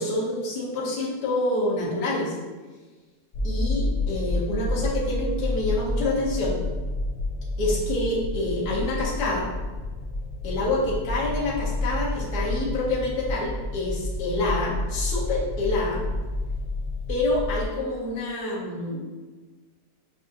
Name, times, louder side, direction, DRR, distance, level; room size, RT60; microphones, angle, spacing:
voice 1, 0.0-2.3 3.4-6.6 7.6-9.5 10.4-16.0 17.1-19.0, left 2 dB, 65° left, -6 dB, 1.5 m, -27 dB
sound 1, 3.3-17.7, left 1 dB, 85° left, 0.6 m, -29 dB
5.3 x 2.5 x 2.6 m, 1.3 s
omnidirectional pair, 2.0 m